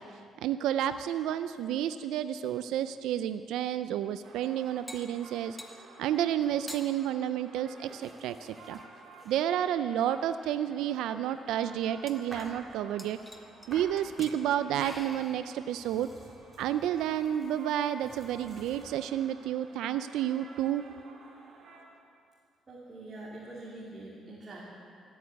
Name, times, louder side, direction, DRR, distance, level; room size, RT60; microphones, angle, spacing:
voice 1, 0.0-5.6 6.0-8.8 9.3-13.2 13.7-16.1 16.6-20.9, right 11 dB, 90° right, 11 dB, 0.3 m, -31 dB
sound 1, 4.2-21.8, right 3 dB, 65° right, 2.9 m, -54 dB
sound 2, 4.4-5.8 6.4-6.8 7.8-9.4 10.2-10.3 10.8-10.9 11.1-11.2 12.1-12.7 13.0-13.7 14.0-14.4 14.8-15.5, left 1 dB, 5° left, 1.4 m, -48 dB
sound 3, 11.2-12.6 13.0-13.9 14.2-18.9, right 1 dB, 20° right, 4.4 m, -51 dB
voice 2, 22.7-24.6, right 2 dB, 35° right, -6 dB, 2.9 m, -45 dB
14.0 x 9.3 x 8.2 m, 2.4 s
cardioid pair, 90°, 0 cm